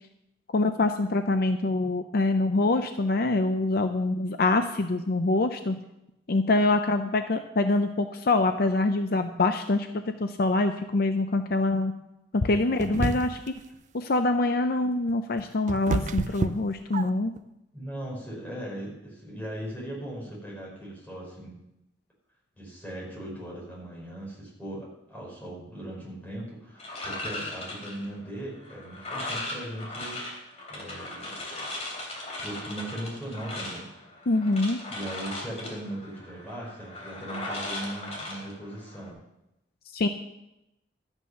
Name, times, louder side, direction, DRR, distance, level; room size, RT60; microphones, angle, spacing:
voice 1, 0.5-5.8 6.3-9.9 10.2-11.9 12.3-13.5 13.9-17.3 34.3-34.8 39.9-40.1, left 2 dB, 55° left, 8 dB, 0.6 m, -25 dB
sound 1, 12.8-13.6 15.1-17.4, right 3 dB, 40° right, 0.5 m, -29 dB
voice 2, 17.7-21.6 22.5-30.2 30.7-31.7 32.4-33.9 34.9-39.2, right 1 dB, 10° left, -5 dB, 5.3 m, -39 dB
sound 2, 26.8-39.1, left 2 dB, 35° left, 3.3 m, -38 dB
13.0 x 8.9 x 5.7 m, 0.88 s
head